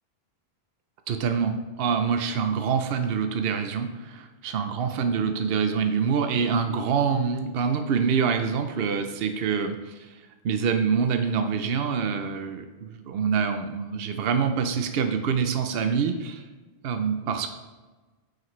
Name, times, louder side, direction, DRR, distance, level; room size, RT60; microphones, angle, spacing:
voice 1, 1.1-16.4 16.8-17.5, right 6 dB, 70° right, 6 dB, 0.8 m, -26 dB
9.2 x 5.0 x 3.1 m, 1.3 s
omnidirectional pair, 1.1 m